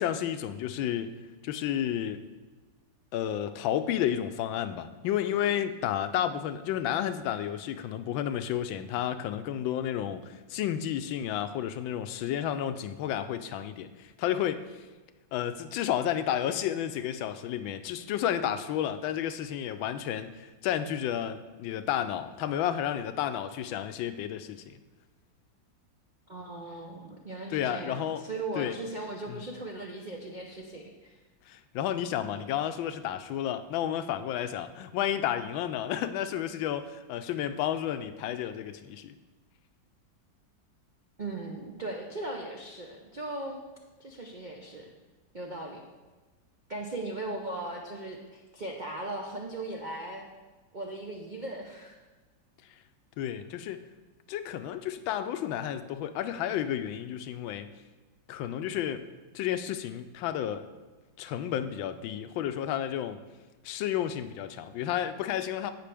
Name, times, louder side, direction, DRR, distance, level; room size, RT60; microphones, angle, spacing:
voice 1, 0.0-2.3 3.1-14.9 15.3-24.8 27.5-28.2 28.5-28.8 29.3-29.5 31.5-39.2 53.2-53.8 54.3-57.7 58.3-59.1 59.3-60.6 61.2-63.2 63.6-65.7, left 10 dB, 90° left, 10 dB, 1.4 m, -31 dB
voice 2, 26.3-31.2 32.2-32.4 41.2-43.6 44.0-44.9 45.3-45.8 46.7-50.3 50.7-52.0, right 2 dB, 70° right, 0 dB, 0.4 m, -38 dB
16.0 x 5.9 x 3.4 m, 1.3 s
omnidirectional pair, 2.1 m